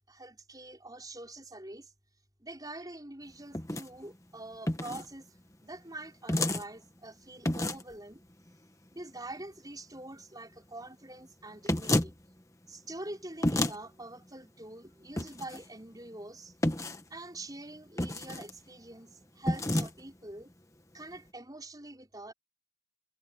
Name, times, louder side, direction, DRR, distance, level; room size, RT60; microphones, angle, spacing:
voice 1, 0.1-1.9 2.4-8.2 8.9-12.2 12.7-16.5 17.1-20.5 20.9-22.3, right 2 dB, 20° right, 5.9 m, -45 dB
sound 1, 3.5-3.9 4.7-5.1 6.3-6.6 7.5-7.9 11.7-12.1 13.4-13.8 15.2-15.6 16.6-17.0 18.0-18.5 19.5-19.9, left 1 dB, 15° left, 1.4 m, -29 dB
head